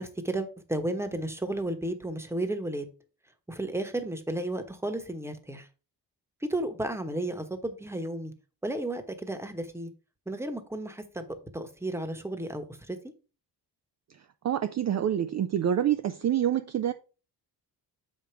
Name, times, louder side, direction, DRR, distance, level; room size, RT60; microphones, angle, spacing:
voice 1, 0.0-2.9 3.5-5.7 6.4-8.3 8.6-9.9 10.3-13.0, right 1 dB, 5° right, 1.1 m, -33 dB
voice 2, 14.4-16.9, right 10 dB, 45° right, 0.4 m, -26 dB
6.5 x 5.1 x 4.5 m
cardioid pair, 105°, 41 cm